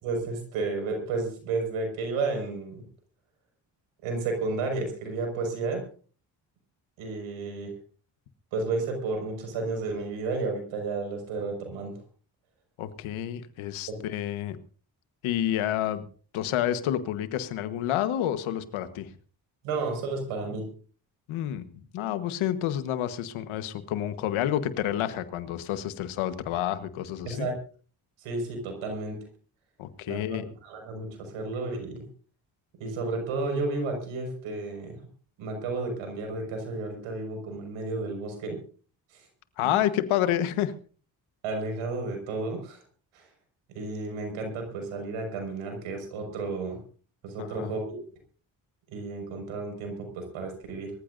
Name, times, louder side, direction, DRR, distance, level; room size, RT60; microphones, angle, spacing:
voice 1, 0.0-2.8 4.0-5.8 7.0-7.7 8.5-11.9 13.9-14.0 19.6-20.6 27.3-27.5 28.2-29.2 30.1-32.0 32.8-35.0 35.4-38.6 39.1-39.3 39.6-39.8 41.4-42.8 43.1-43.3 43.7-46.8 47.2-48.0 48.9-50.9, right 3 dB, 90° right, 4 dB, 5.9 m, -32 dB
voice 2, 12.8-14.6 15.2-16.0 16.3-19.1 21.3-27.5 29.8-30.5 39.6-40.7 47.4-47.7, left 11 dB, 85° left, 11 dB, 1.4 m, -29 dB
24.0 x 15.0 x 2.7 m, 0.40 s
supercardioid pair, 50°, 47 cm